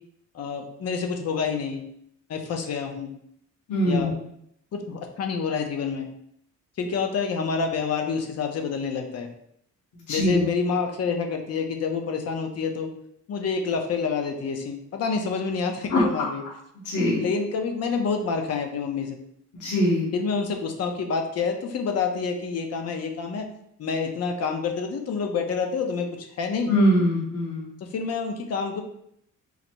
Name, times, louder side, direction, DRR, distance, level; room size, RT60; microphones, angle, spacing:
voice 1, 0.3-1.8 2.3-3.1 3.9-4.1 4.7-6.1 6.8-9.3 10.1-12.9 13.3-16.4 17.2-19.2 20.1-23.5 23.8-26.7 27.9-28.8, left 5 dB, 55° left, 4 dB, 0.6 m, -28 dB
voice 2, 3.7-4.1 10.1-10.4 15.9-16.0 16.8-17.2 19.6-20.1 26.7-27.7, equal, 70° left, -5 dB, 1.2 m, -22 dB
3.9 x 2.0 x 4.4 m, 0.73 s
cardioid pair, 135°, 31 cm